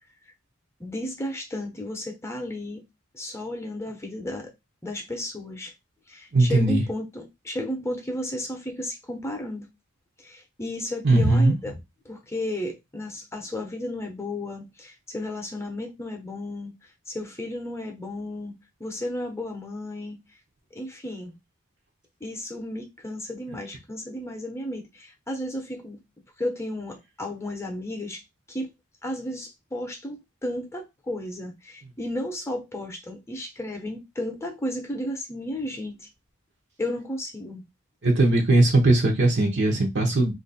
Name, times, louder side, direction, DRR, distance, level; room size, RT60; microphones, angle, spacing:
voice 1, 0.8-2.8 3.1-4.5 4.8-5.7 6.1-9.7 10.2-11.7 12.0-16.7 17.1-18.5 18.8-20.2 20.7-21.3 22.2-26.0 26.4-28.2 28.5-28.7 29.0-36.1 36.8-37.6, left 1 dB, 15° left, 0.8 m, -33 dB
voice 2, 6.3-6.8 11.0-11.5 38.0-40.3, right 2 dB, 55° right, 0.8 m, -19 dB
2.9 x 2.6 x 4.1 m
head